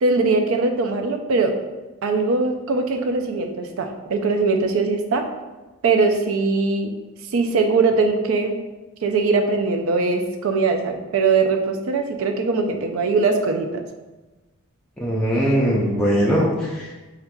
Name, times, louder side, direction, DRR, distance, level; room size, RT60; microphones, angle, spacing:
voice 1, 0.0-1.6 2.0-5.3 5.8-6.9 7.3-8.6 9.0-13.8, right 4 dB, 70° right, 5 dB, 0.4 m, -21 dB
voice 2, 15.0-16.9, equal, 5° left, -7 dB, 0.4 m, -20 dB
4.3 x 2.4 x 2.2 m, 1.2 s
head